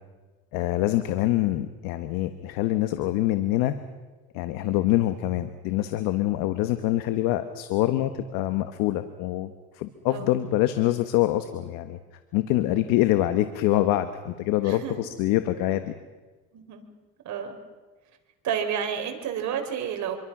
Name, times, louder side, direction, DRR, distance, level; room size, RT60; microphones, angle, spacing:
voice 1, 0.5-3.7 4.3-12.0 12.3-16.0, left 14 dB, 90° left, 10 dB, 1.4 m, -25 dB
voice 2, 14.6-15.0 16.5-16.8 17.2-17.6 18.4-20.2, right 8 dB, 60° right, 4 dB, 4.4 m, -31 dB
26.5 x 23.5 x 6.1 m, 1.3 s
cardioid pair, 115°, 33 cm